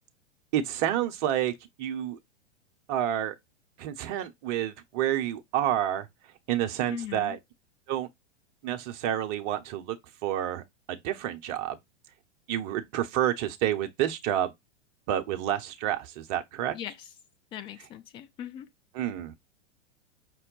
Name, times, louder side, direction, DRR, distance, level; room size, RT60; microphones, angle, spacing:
voice 1, 0.5-1.5 1.8-2.2 2.9-3.3 3.8-6.1 6.5-7.4 7.9-8.1 8.6-10.0 10.2-10.6 10.9-11.8 12.5-14.5 15.1-16.7 18.9-19.3, right 11 dB, 40° right, 0.8 m, -29 dB
voice 2, 6.9-7.4 16.7-17.1 17.5-18.7, left 10 dB, 15° left, 0.3 m, -40 dB
5.4 x 2.1 x 3.9 m
figure-of-eight pair, 105°, 36 cm